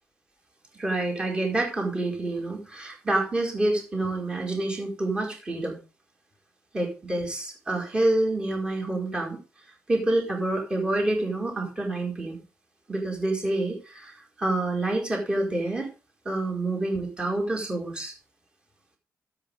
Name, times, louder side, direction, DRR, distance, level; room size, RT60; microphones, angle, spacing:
voice 1, 0.7-5.8 6.7-9.4 9.9-12.4 12.9-15.9 16.2-18.1, right 2 dB, 15° right, -1 dB, 4.7 m, -27 dB
13.0 x 8.3 x 5.4 m, 0.33 s
cardioid pair, 135°, 5 cm